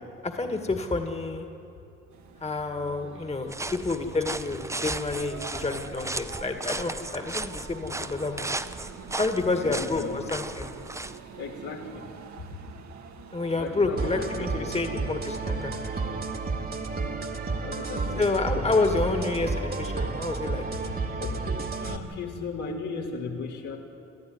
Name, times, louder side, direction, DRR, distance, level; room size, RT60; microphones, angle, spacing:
voice 1, 0.2-1.5 2.4-8.5 9.2-10.7 13.3-15.7 18.2-20.7, left 3 dB, 20° left, 5 dB, 2.0 m, -29 dB
sound 1, 2.1-16.0, right 6 dB, 65° right, 1.7 m, -47 dB
sound 2, 3.5-11.2, right 2 dB, 10° right, 0.7 m, -36 dB
voice 2, 9.6-10.2 11.4-12.0 12.4-12.5 13.6-14.8 17.6-18.8 20.9-21.3 21.8-23.8, left 4 dB, 80° left, -2 dB, 3.8 m, -36 dB
sound 3, 14.0-22.0, right 3 dB, 30° right, 1.9 m, -31 dB
27.5 x 13.5 x 9.7 m, 2.9 s
cardioid pair, 90°, 30 cm